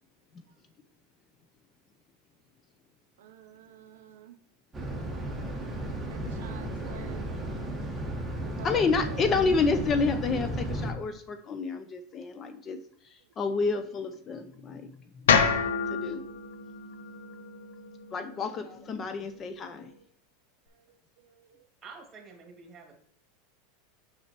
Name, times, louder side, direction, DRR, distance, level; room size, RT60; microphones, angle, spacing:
voice 1, 3.2-4.3 6.1-7.3 8.4-9.3 20.8-21.7, right 8 dB, 80° right, 7 dB, 0.5 m, -48 dB
sound 1, 4.7-10.9, right 1 dB, 10° right, 1.2 m, -34 dB
voice 2, 8.6-12.8 13.4-14.9 15.9-16.2 18.1-19.9, left 4 dB, 30° left, 8 dB, 0.5 m, -29 dB
sound 2, 15.3-19.4, left 6 dB, 85° left, 0.6 m, -29 dB
voice 3, 21.8-22.9, right 4 dB, 25° right, 3 dB, 2.1 m, -48 dB
6.4 x 5.6 x 3.0 m, 0.66 s
hypercardioid pair, 110°, 0 cm